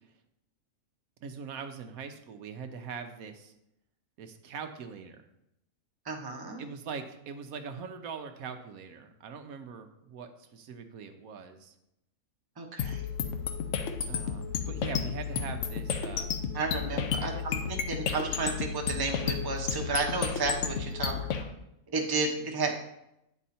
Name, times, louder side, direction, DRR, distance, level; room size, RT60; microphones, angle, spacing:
voice 1, 1.2-3.5 4.2-5.2 6.6-11.7 14.1-16.3 16.9-17.4, right 6 dB, 80° right, 6 dB, 1.2 m, -42 dB
voice 2, 6.0-6.6 12.6-13.1 16.5-21.5 21.9-22.7, right 3 dB, 20° right, 1 dB, 0.8 m, -32 dB
sound 1, 12.8-21.4, left 7 dB, 65° left, 1.0 m, -32 dB
9.0 x 4.6 x 4.2 m, 0.82 s
omnidirectional pair, 1.5 m